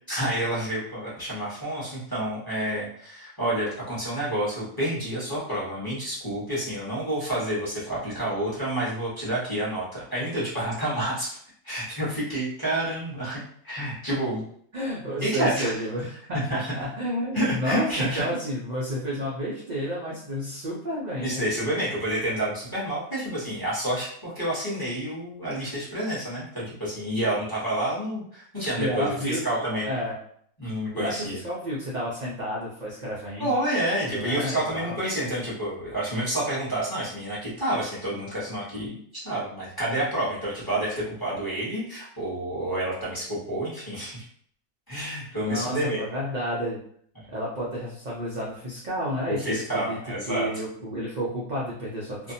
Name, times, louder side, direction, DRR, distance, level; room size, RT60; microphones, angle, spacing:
voice 1, 0.1-11.4 11.6-14.4 15.2-15.8 16.3-16.7 17.3-18.3 21.2-29.9 30.6-31.4 33.4-44.2 44.9-46.0 49.3-50.5 52.2-52.3, right 1 dB, 20° left, -8 dB, 0.8 m, -29 dB
voice 2, 14.7-21.4 28.8-29.5 29.8-30.1 30.9-33.5 34.1-35.0 45.4-46.8 47.3-50.0 50.3-52.3, equal, 60° right, -6 dB, 0.4 m, -31 dB
2.6 x 2.1 x 2.6 m, 0.62 s
omnidirectional pair, 1.5 m